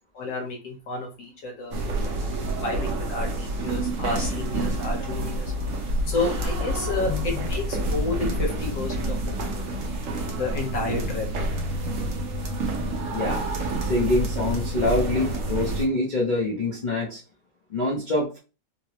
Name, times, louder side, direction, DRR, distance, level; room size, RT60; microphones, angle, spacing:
voice 1, 0.1-2.1 2.6-5.5 6.1-9.9 10.1-11.3, left 3 dB, 90° left, 0 dB, 1.8 m, -31 dB
sound 1, 1.7-15.9, right 1 dB, 55° right, 0.9 m, -28 dB
voice 2, 7.1-7.4 13.1-13.4 13.8-17.2 17.7-18.4, left 2 dB, 65° left, -3 dB, 0.4 m, -25 dB
4.1 x 2.0 x 2.9 m, 0.32 s
omnidirectional pair, 1.9 m